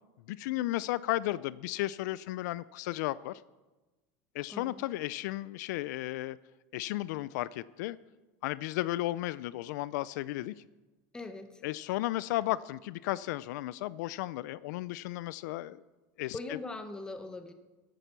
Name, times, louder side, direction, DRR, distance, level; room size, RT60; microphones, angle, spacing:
voice 1, 0.3-3.4 4.3-6.4 6.7-8.0 8.4-10.5 11.6-15.8 16.2-16.4, left 16 dB, 75° left, 18 dB, 0.4 m, -34 dB
voice 2, 4.5-4.8 11.1-11.6 16.3-17.5, left 2 dB, 10° left, 7 dB, 1.0 m, -41 dB
14.5 x 8.9 x 6.8 m, 1.2 s
supercardioid pair, 160°, 10 cm